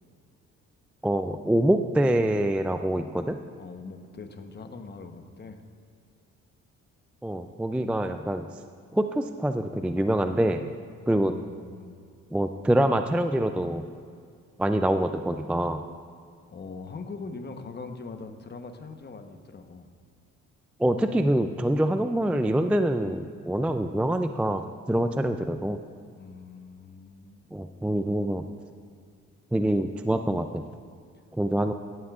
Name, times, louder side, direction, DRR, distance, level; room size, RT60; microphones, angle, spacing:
voice 1, 1.0-3.4 7.2-8.5 8.9-10.7 11.1-11.4 12.3-13.9 14.6-15.8 20.8-25.8 27.5-28.4 29.5-30.6 31.3-31.7, right 1 dB, 5° right, 8 dB, 0.3 m, -25 dB
voice 2, 3.6-5.6 11.1-12.0 16.5-19.9 26.2-27.5, left 4 dB, 35° left, 6 dB, 1.0 m, -42 dB
15.5 x 11.0 x 2.4 m, 2.2 s
cardioid pair, 90°, 30 cm